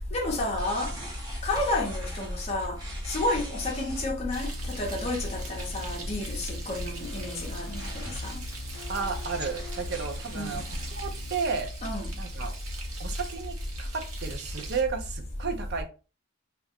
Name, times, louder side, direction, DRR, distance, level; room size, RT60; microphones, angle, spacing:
voice 1, 0.1-0.9 1.4-2.8 3.1-8.4 10.3-10.6 11.8-12.1, left 2 dB, 30° left, 0.6 m, -30 dB
sound 1, 0.6-4.4 4.6-4.7 5.0-6.1 6.4-10.9, right 1 dB, 20° right, 0.8 m, -45 dB
Frying (food), 4.3-14.8, right 4 dB, 85° right, 0.9 m, -44 dB
sound 2, 4.5-11.3, left 4 dB, 75° left, 0.4 m, -43 dB
voice 2, 8.9-11.7 12.2-12.5 13.0-15.8, right 5 dB, 50° right, 0.5 m, -33 dB
2.3 x 2.1 x 3.4 m
head